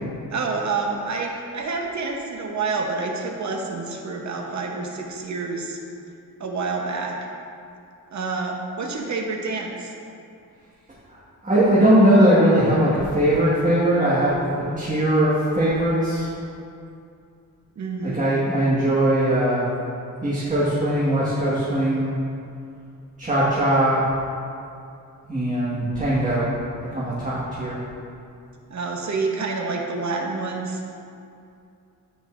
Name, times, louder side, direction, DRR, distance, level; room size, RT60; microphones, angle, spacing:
voice 1, 0.3-5.8 6.4-7.3 8.1-9.9 17.8-18.3 28.7-30.8, right 4 dB, 55° right, 1 dB, 0.9 m, -28 dB
voice 2, 11.4-14.4 14.8-16.3 18.0-19.7 20.2-22.1 23.2-24.0 25.3-26.5 26.9-27.8, right 1 dB, 20° right, -9 dB, 1.6 m, -20 dB
13.5 x 5.4 x 2.6 m, 2.5 s
wide cardioid pair, 120°, 34 cm